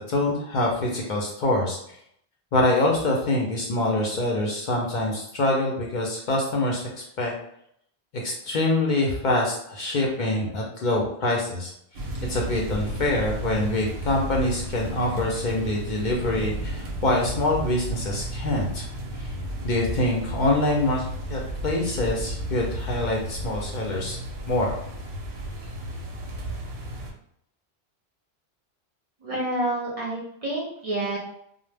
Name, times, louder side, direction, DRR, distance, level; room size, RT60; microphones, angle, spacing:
voice 1, 0.1-1.8 2.5-6.8 7.2-7.3 8.1-11.7 12.3-18.8 19.2-19.3 19.6-24.2 24.5-24.7, left 2 dB, 55° left, -2 dB, 0.6 m, -25 dB
sound 1, 11.9-27.1, right 1 dB, 85° right, 0.8 m, -33 dB
voice 2, 29.2-31.2, right 1 dB, 45° right, -4 dB, 0.5 m, -28 dB
2.0 x 2.0 x 3.2 m, 0.71 s
omnidirectional pair, 1.1 m